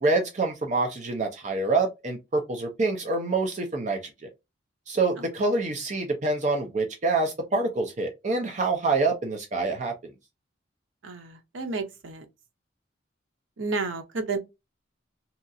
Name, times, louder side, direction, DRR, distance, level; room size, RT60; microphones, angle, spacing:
voice 1, 0.0-4.3 4.9-9.9, right 3 dB, 40° right, 0.5 m, -26 dB
voice 2, 11.0-12.3 13.6-14.4, right 3 dB, 80° right, 0.7 m, -31 dB
2.8 x 2.4 x 2.5 m
head